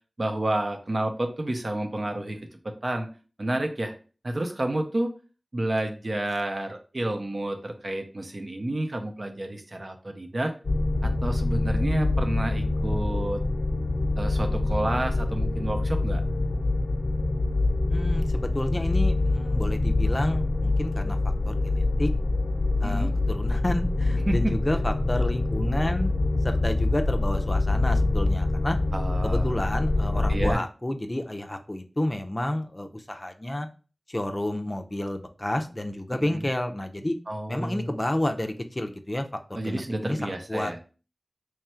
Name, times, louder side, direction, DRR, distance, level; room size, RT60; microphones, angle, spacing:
voice 1, 0.2-2.4 2.6-3.1 3.4-3.9 4.2-5.1 5.5-10.5 11.0-13.4 14.2-16.2 22.8-23.2 24.3-24.5 28.9-29.5 30.3-30.6 36.1-36.4 37.3-37.9 39.5-40.8, right 1 dB, 55° right, 5 dB, 0.6 m, -30 dB
sound 1, 10.6-30.5, left 2 dB, 75° left, 0.5 m, -25 dB
voice 2, 17.9-21.2 21.4-22.1 22.8-26.1 26.4-28.8 29.2-33.7 34.1-37.2 37.5-40.7, left 1 dB, 30° left, 6 dB, 0.5 m, -30 dB
3.2 x 2.4 x 4.3 m, 0.35 s
wide cardioid pair, 40°, 0 cm